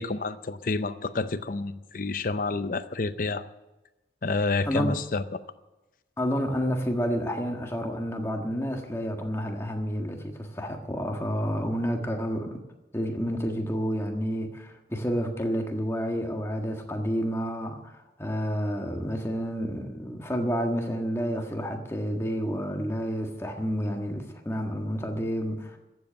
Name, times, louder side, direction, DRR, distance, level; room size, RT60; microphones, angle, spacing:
voice 1, 0.0-3.4 4.2-5.4, left 3 dB, 50° left, 11 dB, 0.6 m, -29 dB
voice 2, 4.7-5.0 6.2-12.6 12.9-25.8, equal, 15° left, 3 dB, 1.5 m, -30 dB
14.5 x 7.7 x 9.6 m, 1.0 s
head